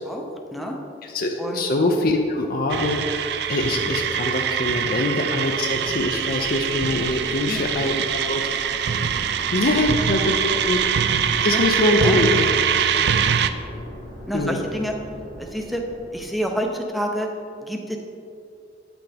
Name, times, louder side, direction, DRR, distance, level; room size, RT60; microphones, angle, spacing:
voice 1, 0.0-0.8 1.4-1.6 7.4-7.7 9.7-9.8 10.3-10.6 11.5-11.6 12.0-12.2 14.3-14.9 15.4-15.8 16.1-17.3 17.6-18.0, equal, ahead, 2 dB, 0.7 m, -29 dB
voice 2, 1.0-3.0 3.5-8.4 9.5-10.4 10.7-10.8 11.4-12.5 12.9-13.1 14.3-14.6, left 2 dB, 50° left, 2 dB, 0.5 m, -23 dB
sound 1, 2.7-13.5, right 8 dB, 60° right, 0.4 m, -23 dB
sound 2, 5.6-16.6, equal, 85° right, 2.1 m, -40 dB
9.6 x 7.8 x 3.5 m, 2.6 s
head